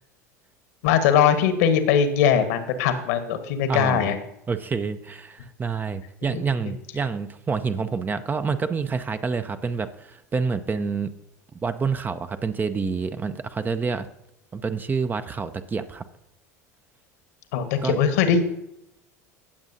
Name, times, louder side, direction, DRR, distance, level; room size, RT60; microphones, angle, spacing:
voice 1, 0.8-4.2 6.3-6.5 17.5-18.4, left 8 dB, 65° left, 9 dB, 1.3 m, -21 dB
voice 2, 3.7-4.1 4.5-11.1 11.6-14.1 14.5-16.0 17.8-18.0, right 5 dB, 20° right, 10 dB, 0.6 m, -28 dB
17.5 x 7.1 x 2.7 m, 0.84 s
figure-of-eight pair, 75°, 8 cm